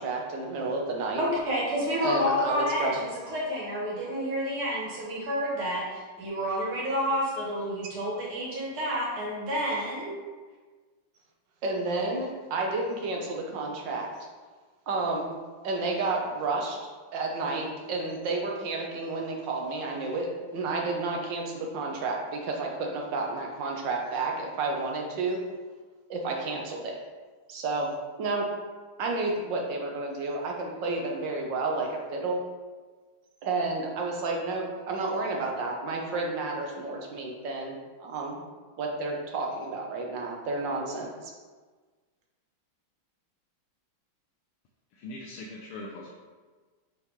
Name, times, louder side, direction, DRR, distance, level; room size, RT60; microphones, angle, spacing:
voice 1, 0.0-1.2 2.0-3.0 11.6-14.3 14.9-15.3 15.6-16.8 17.1-25.4 26.1-26.9 27.5-27.9 28.2-28.5 29.0-32.4 33.4-37.7 38.0-38.4 38.8-41.3, right 3 dB, 65° right, 0 dB, 1.6 m, -31 dB
voice 2, 1.2-10.1, equal, 85° right, -5 dB, 2.7 m, -29 dB
voice 3, 45.0-46.2, left 2 dB, 85° left, -2 dB, 1.6 m, -41 dB
6.6 x 5.5 x 3.1 m, 1.4 s
omnidirectional pair, 2.3 m